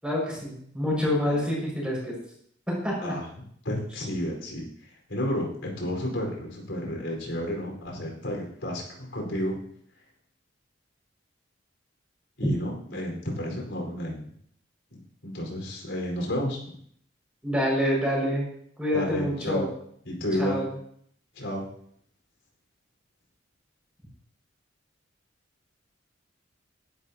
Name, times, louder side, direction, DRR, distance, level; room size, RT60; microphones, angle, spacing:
voice 1, 0.0-2.1 2.7-3.1 17.4-18.5 18.8-19.7 20.4-20.7, equal, 5° right, -4 dB, 5.8 m, -27 dB
voice 2, 3.6-4.7 5.1-9.6 12.4-14.3 14.9-16.7 18.9-19.7 20.0-20.6 21.3-21.7, equal, 75° left, 0 dB, 4.7 m, -31 dB
18.0 x 11.5 x 2.9 m, 0.65 s
head